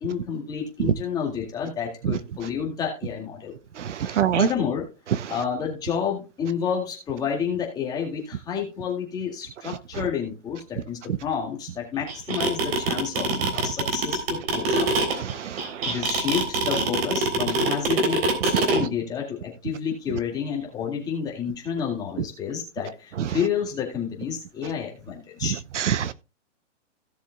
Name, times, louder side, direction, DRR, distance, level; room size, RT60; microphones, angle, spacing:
voice 1, 0.0-3.6 4.0-4.9 5.3-14.9 15.5-25.6, left 7 dB, 10° left, 2.1 m, -30 dB
voice 2, 3.8-4.5 15.3-15.6 25.8-26.1, right 9 dB, 70° right, 0.8 m, -24 dB
sound 1, 12.1-18.8, right 3 dB, 55° right, 3.5 m, -23 dB
16.5 x 6.9 x 2.3 m
hypercardioid pair, 165°, 37 cm